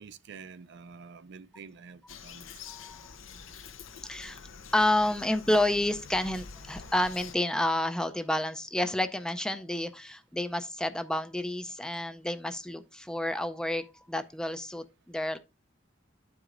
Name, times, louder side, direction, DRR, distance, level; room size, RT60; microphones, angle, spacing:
voice 1, 0.0-2.5, right 5 dB, 60° right, 0.5 m, -48 dB
Bird vocalization bird call bird song, 2.1-7.3, left 6 dB, 85° left, 0.7 m, -46 dB
voice 2, 2.7-3.1 4.0-4.4 4.7-15.4, left 1 dB, 5° left, 0.4 m, -30 dB
12.0 x 4.8 x 2.4 m
head